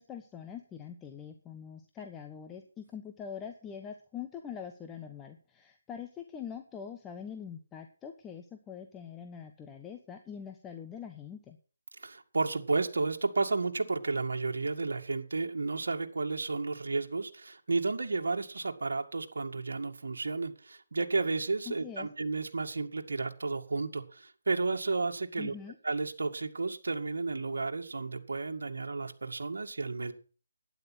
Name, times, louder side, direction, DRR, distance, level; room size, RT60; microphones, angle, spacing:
voice 1, 0.0-11.6 21.7-22.1 25.4-25.8, left 7 dB, 10° left, 4 dB, 1.1 m, -44 dB
voice 2, 12.0-25.5 25.8-30.1, right 3 dB, 75° right, 3 dB, 2.1 m, -32 dB
12.0 x 9.9 x 6.0 m, 0.37 s
hypercardioid pair, 160°, 0 cm